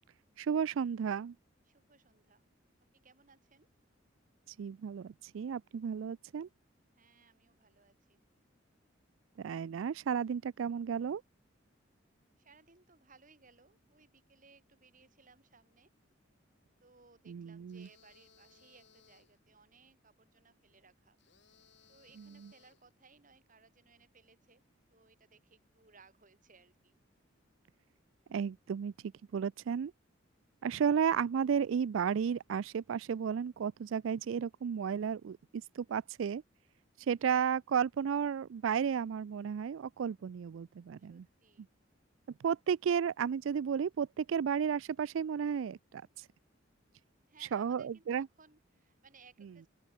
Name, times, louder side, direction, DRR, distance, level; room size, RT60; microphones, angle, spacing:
voice 1, 0.4-1.3 4.6-6.5 9.4-11.2 17.3-17.9 22.2-22.5 28.3-28.9 29.3-29.9 30.6-36.4 37.1-41.3 42.4-46.0 47.5-48.3, right 7 dB, 80° right, 0.4 m, -33 dB
voice 2, 1.7-2.4 3.0-3.7 7.0-8.2 12.4-15.9 16.8-21.2 21.9-24.6 24.9-26.9 37.0-37.3 41.1-41.7 47.3-49.7, right 4 dB, 45° right, 3.7 m, -63 dB
sound 1, 17.7-19.4 21.2-22.9, left 6 dB, 65° left, 6.1 m, -65 dB
open air
head